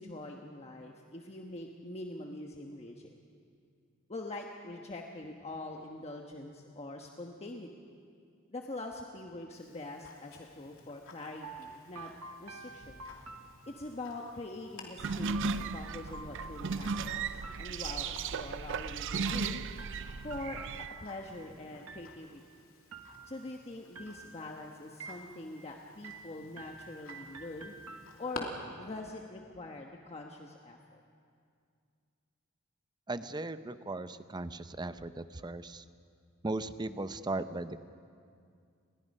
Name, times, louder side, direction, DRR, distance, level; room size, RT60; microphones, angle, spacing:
voice 1, 0.0-3.2 4.1-8.0 8.5-12.1 12.4-13.0 13.7-19.6 20.2-22.4 23.3-27.7 28.2-28.5 28.8-31.0, left 2 dB, 30° left, 1 dB, 1.2 m, -44 dB
Tick-tock, 9.5-28.4, left 4 dB, 70° left, 3.1 m, -54 dB
sound 1, 11.4-14.2 15.3-18.3 19.3-21.4 21.9-22.5 22.9-23.6 23.9-24.6 25.0-25.6 26.0-28.5, right 4 dB, 80° right, 1.4 m, -49 dB
sound 2, 15.0-20.9, right 5 dB, 60° right, 0.5 m, -36 dB
voice 2, 33.1-35.8 36.4-37.8, right 2 dB, 20° right, 12 dB, 0.6 m, -37 dB
29.5 x 22.0 x 5.5 m, 2.3 s
head